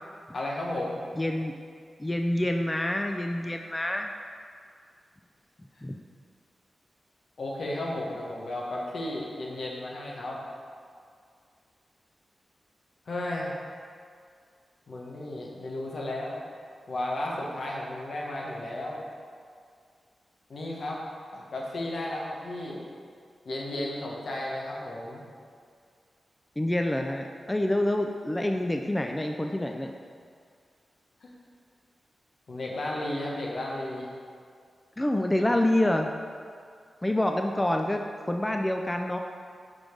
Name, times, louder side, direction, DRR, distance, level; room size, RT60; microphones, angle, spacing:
voice 1, 0.3-1.0 7.4-10.4 13.1-13.6 14.9-16.4 16.9-19.0 20.5-21.0 21.3-22.9 23.4-25.2 31.2-31.3 32.5-34.1, left 1 dB, 70° left, -3 dB, 1.2 m, -34 dB
voice 2, 1.2-1.5 2.0-4.1 5.8-6.0 26.6-29.9 35.0-36.1 37.0-39.2, left 1 dB, 20° left, 3 dB, 0.4 m, -27 dB
6.1 x 3.8 x 5.1 m, 2.2 s
cardioid pair, 45°, 0 cm